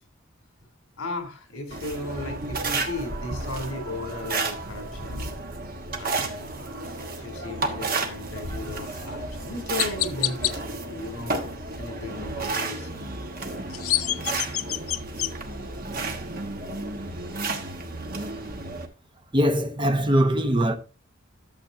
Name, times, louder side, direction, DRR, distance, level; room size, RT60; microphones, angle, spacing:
voice 1, 1.0-5.4 5.9-11.3 11.7-13.2 15.6-15.7, left 2 dB, 70° left, 3.0 m, -36 dB
sound 1, 1.7-18.9, right 3 dB, 45° right, 1.2 m, -32 dB
Chirp tweet, 8.9-9.0 9.8-10.5 13.5-15.3, left 14 dB, 90° left, 0.5 m, -27 dB
voice 2, 19.3-20.8, equal, 20° right, 0.9 m, -21 dB
11.5 x 7.3 x 2.6 m
head